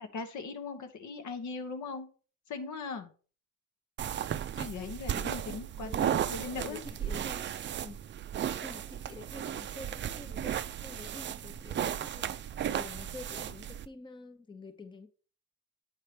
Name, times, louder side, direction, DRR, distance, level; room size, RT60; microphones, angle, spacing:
voice 1, 0.0-2.1 2.5-3.1 4.6-6.8, left 4 dB, 70° left, 1.2 m, -39 dB
sound 1, 4.0-13.9, right 10 dB, 40° right, 0.4 m, -35 dB
voice 2, 5.8-6.3 6.6-7.5 7.8-8.0 8.6-12.4 12.7-15.1, left 3 dB, 15° left, 0.7 m, -48 dB
8.6 x 3.2 x 5.1 m
cardioid pair, 90°, 30 cm